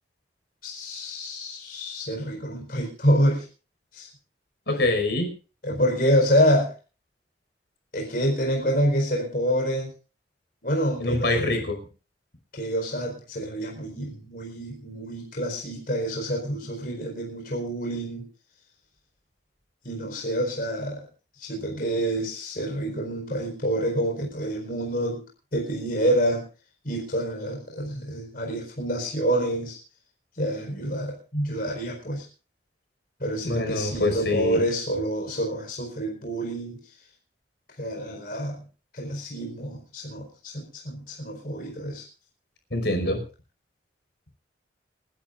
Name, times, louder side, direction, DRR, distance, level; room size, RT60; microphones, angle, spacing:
voice 1, 0.6-3.5 3.9-4.1 5.6-6.7 7.9-9.9 10.6-11.5 12.5-18.3 19.8-21.0 21.4-25.2 25.5-26.5 26.8-29.8 30.4-32.3 33.2-36.8 37.8-38.6 38.9-42.0, equal, 55° left, 1 dB, 4.5 m, -27 dB
voice 2, 4.7-5.3 11.0-11.8 33.4-34.6 42.7-43.2, left 2 dB, 75° left, 5 dB, 5.4 m, -25 dB
30.0 x 11.0 x 2.5 m, 0.35 s
head